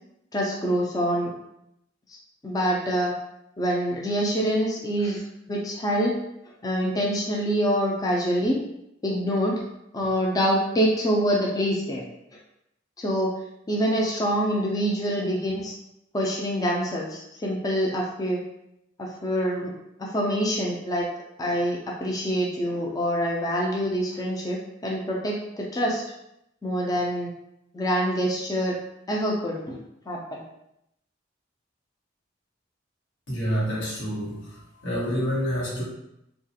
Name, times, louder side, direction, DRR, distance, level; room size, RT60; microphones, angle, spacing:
voice 1, 0.3-1.3 2.4-3.1 3.6-6.2 6.6-8.6 9.0-9.6 9.9-12.0 13.0-13.4 13.7-15.7 16.1-18.4 19.0-19.7 20.0-21.1 21.4-26.0 26.6-27.3 27.7-28.8 29.1-29.8 30.1-30.4, equal, 20° left, -2 dB, 0.4 m, -25 dB
voice 2, 33.3-34.4 34.8-35.8, equal, 85° left, -6 dB, 1.1 m, -27 dB
2.8 x 2.3 x 2.7 m, 0.81 s
head